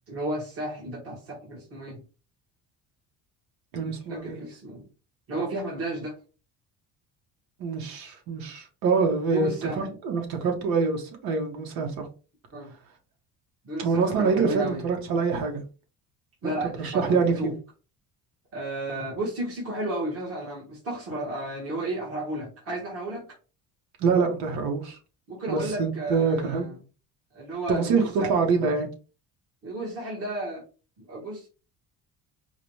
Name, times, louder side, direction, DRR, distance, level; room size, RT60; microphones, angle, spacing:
voice 1, 0.1-2.0 3.8-4.8 5.3-6.2 9.3-10.0 12.5-12.7 13.6-14.8 16.4-17.5 18.5-23.3 25.3-26.7 27.3-28.3 29.6-30.6 31.0-31.5, right 1 dB, 40° right, 1.4 m, -33 dB
voice 2, 3.7-4.4 7.6-12.1 13.8-15.6 16.4-17.5 24.0-25.0 25.5-26.7 27.7-28.9, right 5 dB, 75° right, 1.3 m, -25 dB
4.7 x 2.3 x 3.1 m
cardioid pair, 175°, 37 cm